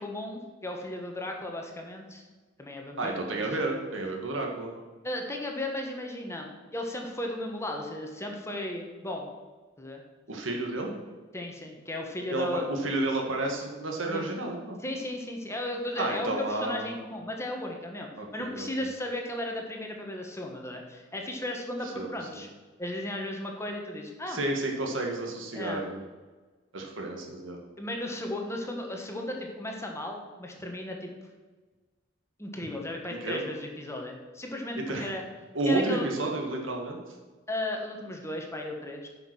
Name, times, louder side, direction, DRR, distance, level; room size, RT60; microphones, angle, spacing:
voice 1, 0.0-2.2 2.6-3.4 5.0-9.3 9.8-10.0 11.3-12.7 14.1-14.2 14.8-22.5 22.8-24.4 25.5-25.8 27.8-31.1 32.4-35.2 35.6-36.1 37.5-39.1, left 1 dB, 15° left, 2 dB, 1.3 m, -35 dB
voice 2, 3.0-4.7 10.3-10.9 12.3-14.8 16.0-16.9 18.2-18.7 21.8-22.4 24.3-26.0 26.7-27.6 33.1-33.4 34.9-35.1 35.5-37.0, right 2 dB, 85° right, 1 dB, 2.0 m, -31 dB
10.0 x 5.9 x 6.2 m, 1.3 s
head